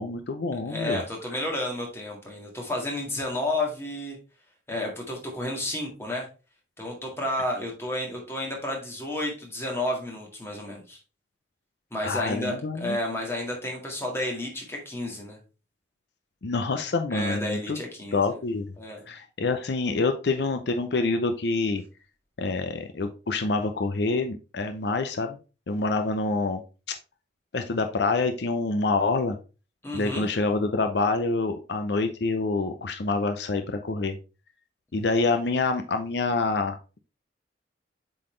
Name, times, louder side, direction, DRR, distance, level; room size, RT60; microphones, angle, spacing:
voice 1, 0.0-1.0 12.0-13.0 16.4-17.8 18.1-18.7 19.1-21.8 22.4-25.4 25.7-26.6 27.5-29.4 29.9-34.2 34.9-36.8, left 3 dB, 70° left, 7 dB, 0.6 m, -26 dB
voice 2, 0.7-4.2 4.7-6.3 6.8-11.0 11.9-15.4 17.1-18.4 18.8-19.0 29.8-30.3, left 1 dB, 15° left, -1 dB, 1.8 m, -31 dB
7.7 x 3.9 x 3.2 m, 0.33 s
head